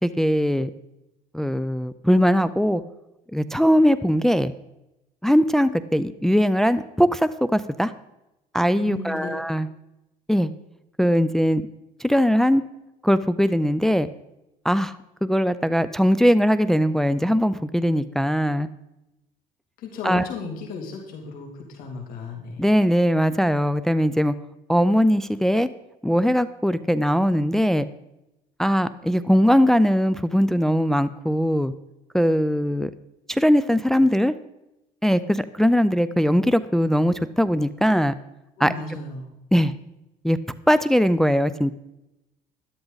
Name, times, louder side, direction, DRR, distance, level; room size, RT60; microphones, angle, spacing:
voice 1, 0.0-0.7 1.3-2.8 3.3-4.5 5.2-7.9 8.5-9.7 10.3-10.5 11.0-11.7 12.0-12.6 13.0-14.1 14.6-14.9 15.2-18.7 20.0-20.3 22.6-24.3 24.7-25.7 26.0-27.9 28.6-31.7 32.1-32.9 33.3-34.3 35.0-38.1 38.6-38.7 39.5-39.7 40.2-40.4 40.7-41.7, equal, 5° left, 12 dB, 0.4 m, -20 dB
voice 2, 8.8-9.3 19.8-22.6 38.6-39.3, left 4 dB, 75° left, 1 dB, 2.8 m, -35 dB
13.0 x 12.0 x 4.0 m, 0.92 s
cardioid pair, 125°, 15 cm